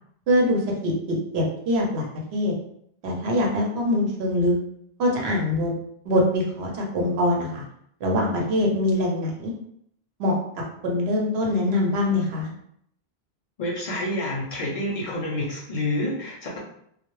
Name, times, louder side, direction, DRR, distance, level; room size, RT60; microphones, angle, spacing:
voice 1, 0.3-2.1 2.3-2.5 3.0-4.5 5.0-5.7 6.1-7.6 8.0-9.5 10.2-10.3 10.8-12.5, left 1 dB, 85° right, -1 dB, 0.9 m, -23 dB
voice 2, 13.6-16.6, left 1 dB, 60° left, -2 dB, 0.6 m, -28 dB
2.1 x 2.0 x 2.9 m, 0.70 s
omnidirectional pair, 1.1 m